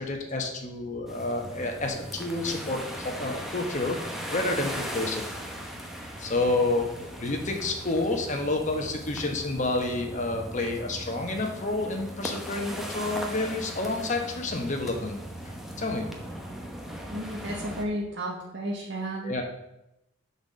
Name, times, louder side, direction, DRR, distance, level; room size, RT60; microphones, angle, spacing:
voice 1, 0.0-5.2 5.5-5.6 6.2-15.2 15.4-16.1 19.2-19.4, left 2 dB, 40° left, 2 dB, 1.1 m, -29 dB
sound 1, 1.1-17.8, equal, ahead, 0.9 m, -38 dB
voice 2, 17.1-19.3, right 1 dB, 60° right, -3 dB, 1.1 m, -33 dB
7.2 x 4.2 x 6.2 m, 0.89 s
head